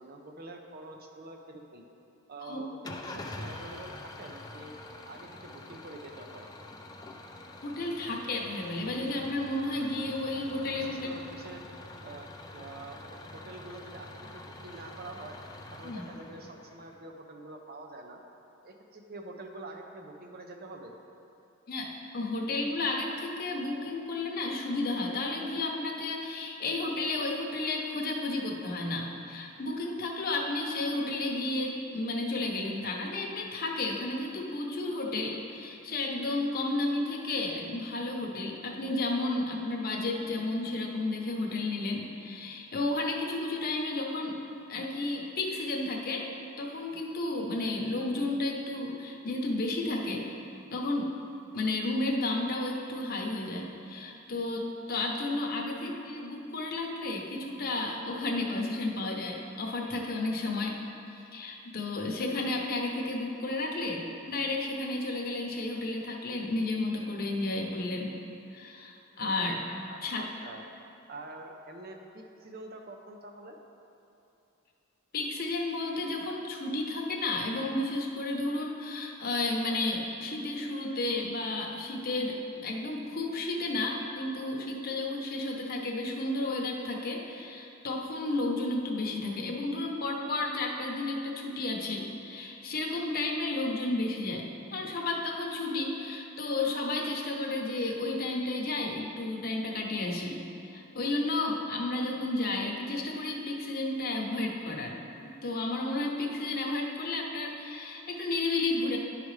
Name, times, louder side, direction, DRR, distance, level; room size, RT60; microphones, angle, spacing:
voice 1, 0.0-1.8 2.3-4.7 5.1-6.5 10.8-11.6 12.0-12.3 12.5-15.4 15.7-18.2 18.6-21.0 69.9-70.6 71.1-73.6, right 2 dB, 50° right, 3 dB, 0.7 m, -46 dB
Engine starting / Idling, 2.8-17.0, left 2 dB, 20° left, 0.4 m, -46 dB
voice 2, 7.6-11.1 15.8-16.0 21.7-44.3 44.7-46.3 46.6-50.2 50.7-51.1 51.5-60.8 61.3-68.1 68.5-69.6 70.0-70.2 75.1-94.4 94.7-100.4 100.7-104.9 105.4-109.0, left 2 dB, 45° left, 0 dB, 0.8 m, -32 dB
11.0 x 4.9 x 3.2 m, 2.7 s
head